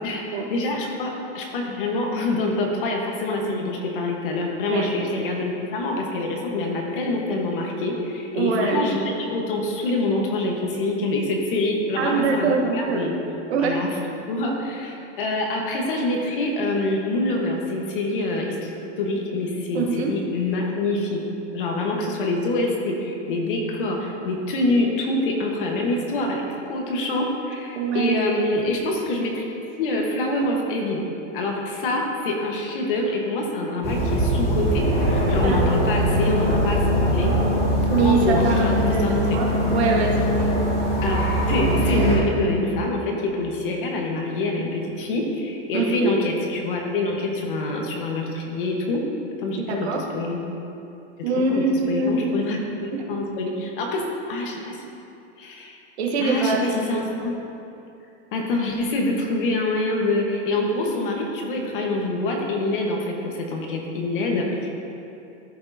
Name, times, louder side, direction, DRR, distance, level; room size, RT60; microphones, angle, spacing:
voice 1, 0.5-13.1 13.6-13.9 14.3-18.7 19.0-21.2 21.5-29.5 29.8-31.0 31.3-37.3 38.0-39.2 41.0-49.0 49.4-49.9 50.1-50.4 51.5-54.0 54.3-54.8 55.4-55.8 56.2-57.3 58.3-64.7, left 2 dB, 50° left, 0 dB, 1.3 m, -25 dB
voice 2, 8.3-8.8 12.0-13.2 13.5-13.8 19.7-20.1 27.7-28.2 35.4-35.8 37.9-40.4 45.7-46.1 49.7-50.0 51.2-52.3 56.0-56.6 56.9-57.0, right 4 dB, 65° right, 1 dB, 1.3 m, -23 dB
sound 1, 33.8-42.2, equal, 15° left, 1.6 m, -21 dB
13.5 x 6.1 x 2.8 m, 2.7 s
supercardioid pair, 180°, 35 cm